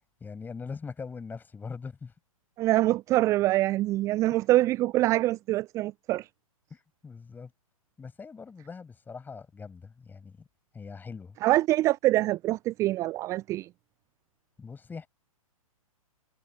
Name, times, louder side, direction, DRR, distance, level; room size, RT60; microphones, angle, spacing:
voice 1, 0.2-2.1 6.7-7.5 8.0-10.5 10.7-11.4 14.6-15.1, left 5 dB, 10° left, 6.9 m, -41 dB
voice 2, 2.6-6.3 11.4-13.7, right 16 dB, 15° right, 0.4 m, -25 dB
figure-of-eight pair, 120°, 19 cm